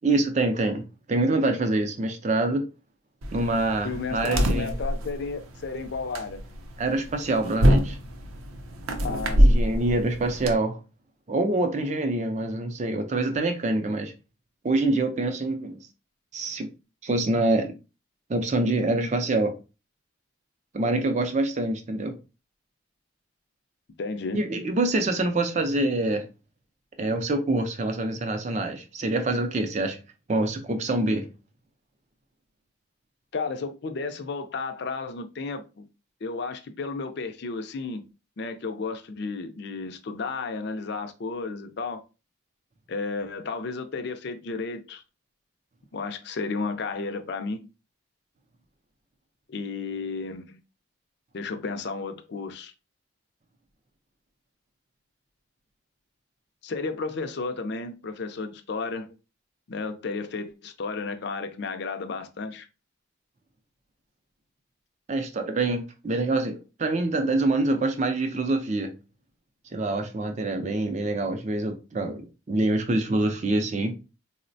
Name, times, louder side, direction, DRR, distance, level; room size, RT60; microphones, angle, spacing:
voice 1, 0.0-2.6 3.3-4.7 6.8-8.0 9.4-10.8 11.3-14.1 14.6-15.8 16.3-16.7 17.0-17.7 18.3-19.6 20.7-22.1 24.3-26.2 27.0-30.0 30.3-31.3 65.1-68.9 69.7-73.9, right 2 dB, 35° right, 0.4 m, -25 dB
sound 1, 3.2-10.5, equal, 85° right, 0.5 m, -25 dB
voice 2, 3.8-6.4 9.0-9.6 24.0-24.4 33.3-35.9 36.2-38.0 38.4-42.0 42.9-45.0 45.9-47.7 49.5-50.6 51.3-52.7 56.6-59.1 59.7-62.7, left 4 dB, 55° left, 0.4 m, -33 dB
4.0 x 2.1 x 2.6 m
head